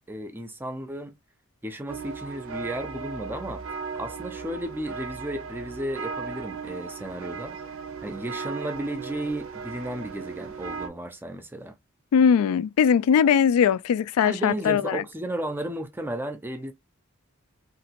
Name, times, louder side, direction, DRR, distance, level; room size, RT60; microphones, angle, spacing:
voice 1, 0.1-1.1 1.6-3.6 4.0-7.6 8.0-11.7 14.2-16.7, right 1 dB, 10° right, 0.4 m, -34 dB
sound 1, 1.9-10.9, right 5 dB, 70° right, 0.5 m, -37 dB
voice 2, 12.1-15.0, left 7 dB, 85° left, 0.3 m, -20 dB
2.9 x 2.6 x 2.8 m
head